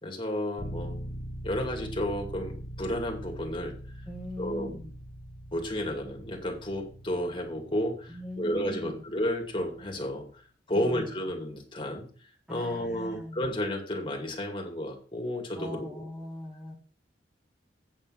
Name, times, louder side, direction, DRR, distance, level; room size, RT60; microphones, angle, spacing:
voice 1, 0.0-1.0 1.4-3.8 4.4-4.8 5.5-10.4 10.7-12.1 12.5-15.9, left 1 dB, 30° left, 2 dB, 2.4 m, -32 dB
sound 1, 0.6-10.3, equal, 10° left, 2.0 m, -43 dB
voice 2, 4.1-5.0 8.1-9.1 10.7-11.2 12.5-13.4 15.6-16.8, equal, 5° right, 1 dB, 1.3 m, -41 dB
8.7 x 7.3 x 5.8 m, 0.41 s
head